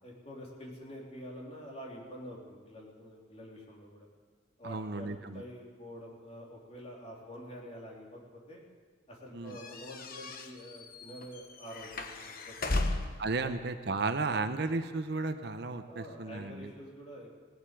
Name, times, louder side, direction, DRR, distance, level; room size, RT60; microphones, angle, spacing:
voice 1, 0.0-4.1 4.6-8.2 8.5-8.6 9.1-12.8 13.4-13.5 15.9-17.3, equal, 35° left, -2 dB, 3.2 m, -47 dB
voice 2, 4.6-5.4 9.3-9.6 13.2-16.7, right 3 dB, 60° right, 8 dB, 0.8 m, -34 dB
sound 1, 9.5-13.3, left 2 dB, 50° left, 1.1 m, -36 dB
18.5 x 8.1 x 9.0 m, 1.5 s
head